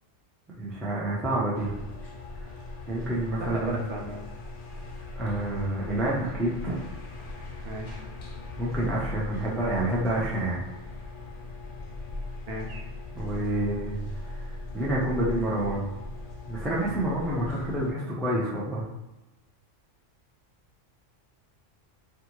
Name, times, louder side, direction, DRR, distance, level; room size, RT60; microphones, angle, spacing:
voice 1, 0.6-1.8 2.9-3.8 5.2-6.8 8.6-10.7 13.2-14.0 14.3-15.9 16.5-18.9, right 1 dB, ahead, -6 dB, 0.3 m, -28 dB
sound 1, 1.5-17.9, left 2 dB, 55° left, 0.7 m, -39 dB
voice 2, 3.4-4.2 7.6-8.0 12.5-12.8, right 2 dB, 70° right, 0 dB, 0.9 m, -34 dB
2.5 x 2.4 x 2.9 m, 1.0 s
omnidirectional pair, 1.3 m